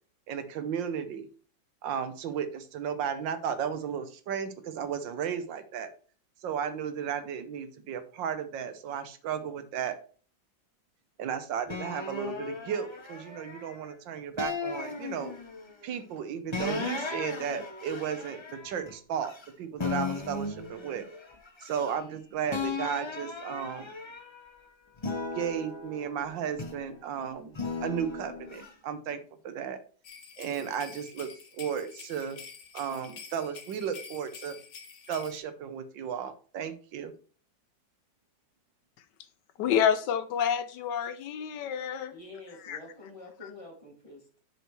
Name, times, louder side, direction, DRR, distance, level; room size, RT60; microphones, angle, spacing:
voice 1, 0.3-1.3 1.8-5.9 6.4-10.0 11.2-15.3 15.8-21.1 21.6-23.9 25.3-29.2 29.4-29.8 30.4-32.4 32.7-34.6 35.1-37.1, right 8 dB, 85° right, 1.6 m, -34 dB
sound 1, 11.7-13.8 14.4-15.7 16.5-19.5 19.8-22.2 22.5-24.5 25.0-27.0 27.5-28.7, left 4 dB, 40° left, 0.4 m, -36 dB
sound 2, 30.0-35.4, left 6 dB, 55° left, 1.5 m, -48 dB
voice 2, 39.6-42.1 42.6-42.8 43.4-43.5, left 8 dB, 75° left, 1.2 m, -28 dB
voice 3, 42.1-44.4, left 2 dB, 15° left, 2.2 m, -47 dB
8.1 x 6.2 x 3.1 m
omnidirectional pair, 2.0 m